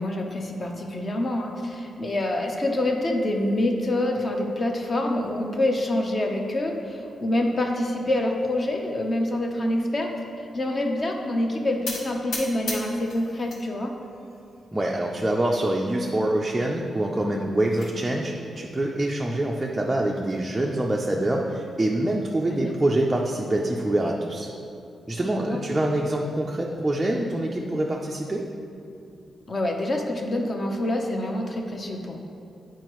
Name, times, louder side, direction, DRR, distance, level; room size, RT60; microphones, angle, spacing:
voice 1, 0.0-10.1 10.5-14.0 22.5-22.7 25.2-25.6 29.5-32.2, left 1 dB, 30° left, 2 dB, 0.6 m, -26 dB
sound 1, 11.9-13.6 14.0-14.7 15.2-15.3 15.6-15.7 16.1-16.2 17.3-17.9, left 2 dB, 75° left, 1.2 m, -36 dB
voice 2, 14.7-24.5 25.1-28.4, right 1 dB, 15° right, -1 dB, 0.4 m, -25 dB
9.5 x 4.6 x 3.0 m, 2.6 s
wide cardioid pair, 155°, 0 cm